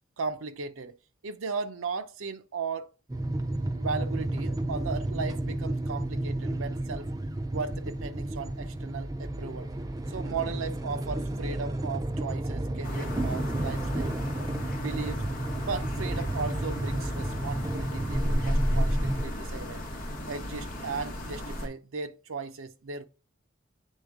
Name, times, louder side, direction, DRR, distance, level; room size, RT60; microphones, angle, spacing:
voice 1, 0.2-0.9 1.2-2.9 3.8-7.1 7.5-9.7 10.1-14.2 14.7-15.3 15.6-19.8 20.3-23.1, right 4 dB, 80° right, 0.6 m, -36 dB
sound 1, 3.1-19.2, right 1 dB, 15° right, 0.4 m, -32 dB
sound 2, 12.8-21.7, equal, 40° left, 1.4 m, -33 dB
8.3 x 3.5 x 3.5 m
head